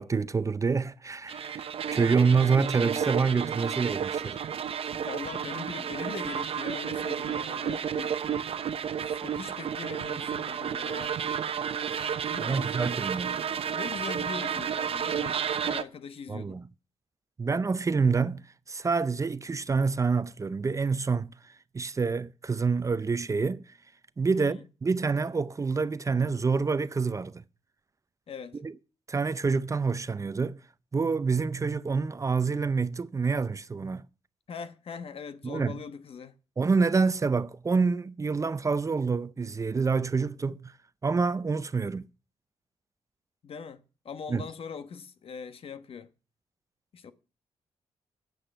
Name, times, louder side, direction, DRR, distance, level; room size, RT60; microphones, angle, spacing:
voice 1, 0.0-4.4 12.4-13.4 16.3-16.6 17.4-18.4 18.7-21.3 21.7-23.6 24.2-27.4 28.6-28.7 29.1-30.6 30.9-34.1 35.4-35.8 36.6-40.7 41.0-42.1 44.3-44.4, right 4 dB, 30° right, 0.6 m, -27 dB
sound 1, 1.3-15.8, right 8 dB, 60° right, 0.9 m, -32 dB
voice 2, 4.9-8.2 9.0-11.2 12.3-16.6 24.3-24.6 28.3-28.6 34.5-36.3 43.4-46.1 46.9-47.1, left 6 dB, 60° left, 1.2 m, -41 dB
10.0 x 7.9 x 9.0 m
cardioid pair, 90°, 11 cm